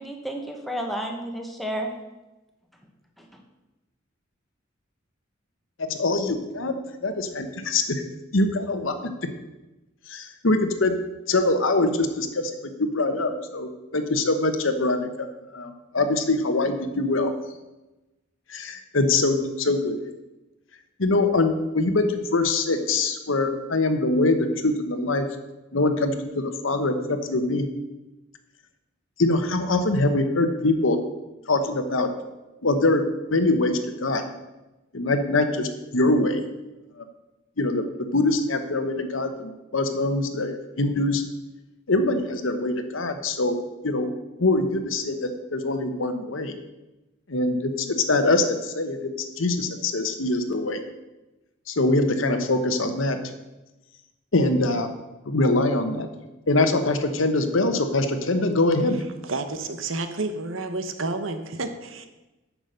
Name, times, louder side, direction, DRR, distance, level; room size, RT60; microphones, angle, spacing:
voice 1, 0.0-1.9 3.2-3.3, right 1 dB, ahead, 1 dB, 1.3 m, -31 dB
voice 2, 5.8-6.7 7.0-8.0 8.3-9.1 10.1-10.9 11.3-15.3 15.5-17.3 18.5-20.0 21.0-25.3 25.7-27.6 29.2-31.0 31.5-32.1 32.6-33.0 33.3-34.2 34.9-36.5 37.0-37.1 37.6-37.8 38.1-41.2 41.9-43.6 43.8-44.1 44.4-46.5 47.3-49.0 49.4-50.8 51.7-53.2 54.3-54.9 55.3-56.1 56.5-59.0, left 2 dB, 75° left, 8 dB, 1.1 m, -23 dB
voice 3, 59.2-62.1, right 3 dB, 80° right, 9 dB, 1.0 m, -30 dB
9.0 x 6.1 x 6.7 m, 1.0 s
head